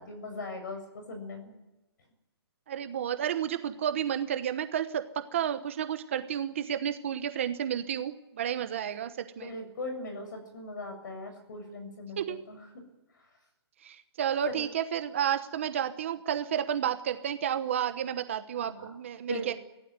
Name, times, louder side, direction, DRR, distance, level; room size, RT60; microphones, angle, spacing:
voice 1, 0.0-1.5 9.4-12.2 12.5-12.6 14.5-14.7 18.7-18.9 19.3-19.6, left 2 dB, 45° left, 6 dB, 7.7 m, -39 dB
voice 2, 2.7-9.6 12.2-12.4 13.8-19.5, right 9 dB, 30° right, 9 dB, 1.0 m, -31 dB
24.5 x 16.5 x 9.6 m, 1.1 s
hypercardioid pair, 180°, 14 cm